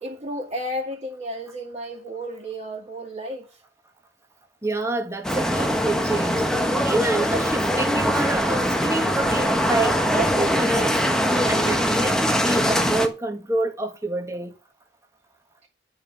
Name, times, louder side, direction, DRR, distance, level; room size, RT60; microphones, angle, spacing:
voice 1, 0.0-3.6, equal, 35° right, 2.4 m, -33 dB
voice 2, 4.6-6.5 6.8-10.9 11.5-14.5, right 2 dB, 15° right, 1.7 m, -27 dB
sound 1, 5.2-13.1, equal, 5° left, 1.2 m, -22 dB
11.5 x 5.5 x 7.6 m
head